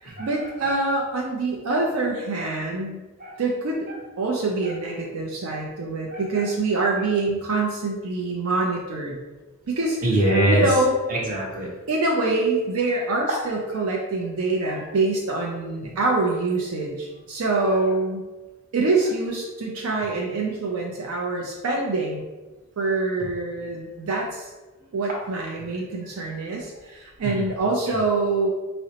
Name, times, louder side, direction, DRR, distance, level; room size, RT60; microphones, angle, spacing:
voice 1, 0.0-3.0 3.4-3.8 4.2-9.2 9.7-10.0 10.5-10.9 11.9-18.2 18.7-22.2 22.8-24.5 24.9-28.5, right 3 dB, 75° right, -1 dB, 0.5 m, -25 dB
voice 2, 6.1-6.4 10.0-10.6 11.1-11.7 14.7-14.8 15.8-15.9 27.2-27.4, right 1 dB, 40° right, -3 dB, 0.8 m, -23 dB
3.8 x 2.1 x 2.8 m, 1.2 s
head